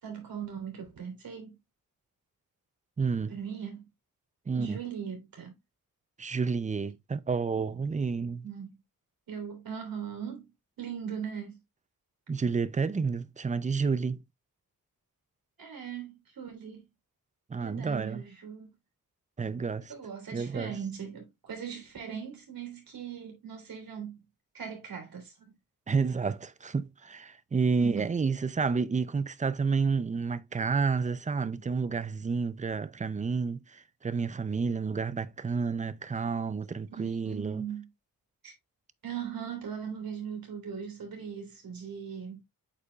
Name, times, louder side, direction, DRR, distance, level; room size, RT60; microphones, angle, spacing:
voice 1, 0.0-1.6 3.3-3.8 4.5-5.5 8.4-8.8 9.3-10.5 10.8-11.6 15.6-16.9 17.6-18.7 19.9-24.2 24.5-25.5 27.8-28.1 36.9-37.9 38.4-38.5 39.0-42.4, right 7 dB, 75° right, 3.3 m, -39 dB
voice 2, 3.0-3.4 4.5-4.8 6.2-8.4 12.3-14.2 17.5-18.2 19.4-19.9 20.3-20.8 25.9-37.6, right 5 dB, 20° right, 0.4 m, -30 dB
8.4 x 5.3 x 2.2 m
wide cardioid pair, 125°, 35 cm